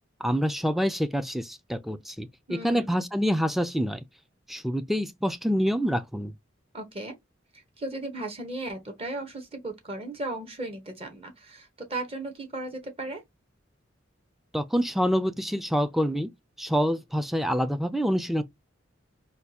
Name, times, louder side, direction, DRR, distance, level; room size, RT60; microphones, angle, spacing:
voice 1, 0.2-4.0 4.5-6.3 14.5-16.3 16.6-18.4, equal, ahead, 0.4 m, -26 dB
voice 2, 2.5-2.9 6.7-7.1 7.5-13.2, right 2 dB, 30° right, 0.9 m, -36 dB
4.5 x 2.3 x 2.8 m
head